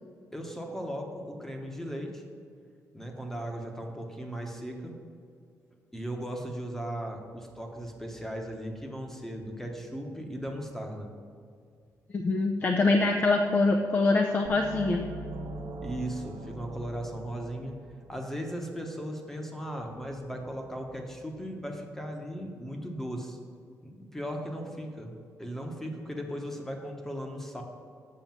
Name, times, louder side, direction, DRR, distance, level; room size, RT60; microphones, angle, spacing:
voice 1, 0.3-2.2 2.9-5.0 5.9-11.1 15.8-17.8 18.1-23.4 23.8-25.1 25.4-27.6, equal, 5° left, 3 dB, 1.1 m, -37 dB
voice 2, 12.1-15.1, left 3 dB, 30° left, 3 dB, 0.6 m, -24 dB
sound 1, 14.4-18.2, right 2 dB, 80° right, 1.1 m, -41 dB
7.5 x 6.6 x 7.3 m, 2.3 s
wide cardioid pair, 170°, 6 cm